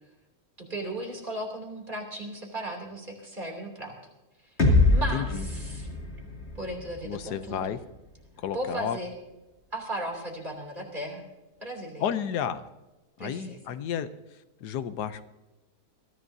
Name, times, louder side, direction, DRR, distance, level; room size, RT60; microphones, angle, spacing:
voice 1, 0.6-4.0 4.4-4.5 4.9-5.9 6.5-7.6 8.5-9.1 9.7-11.2 11.6-12.2 13.2-13.6, right 1 dB, 30° right, 0 dB, 3.1 m, -36 dB
sound 1, 4.6-8.5, left 2 dB, 40° left, 2.7 m, -26 dB
voice 2, 5.1-5.5 7.0-7.8 8.4-9.0 12.0-12.7 13.2-14.1 14.6-15.2, left 8 dB, 90° left, 12 dB, 1.3 m, -31 dB
22.0 x 14.5 x 2.7 m, 1.1 s
omnidirectional pair, 1.7 m